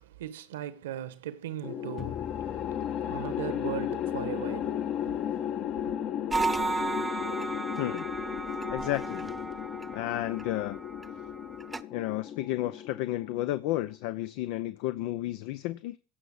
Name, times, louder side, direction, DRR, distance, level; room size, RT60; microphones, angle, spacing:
voice 1, 0.0-5.4, right 11 dB, 85° right, 1.4 m, -39 dB
sound 1, 1.6-13.9, left 10 dB, 50° left, 1.4 m, -35 dB
sound 2, 2.0-7.0, left 10 dB, 35° left, 1.1 m, -47 dB
sound 3, 6.3-11.8, right 3 dB, 15° right, 0.9 m, -34 dB
voice 2, 8.7-9.3 9.9-10.8 11.9-16.0, left 15 dB, 70° left, 0.7 m, -32 dB
16.0 x 5.7 x 8.2 m
hypercardioid pair, 90°, 0 cm